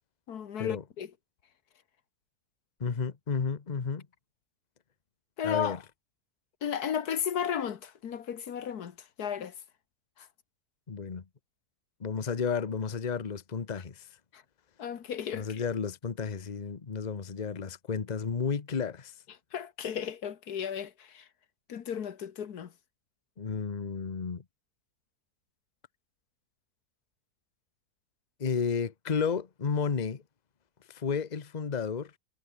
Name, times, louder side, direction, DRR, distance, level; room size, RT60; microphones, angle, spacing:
voice 1, 0.3-1.1 5.4-5.8 6.6-9.5 14.3-14.4 14.8-15.6 19.5-21.3 21.7-22.7, left 8 dB, 85° left, 1.8 m, -34 dB
voice 2, 2.8-4.1 5.4-5.8 10.9-11.2 12.0-14.1 15.3-19.1 23.4-24.4 28.4-30.2 30.9-32.1, left 5 dB, 30° left, 1.1 m, -32 dB
omnidirectional pair, 1.6 m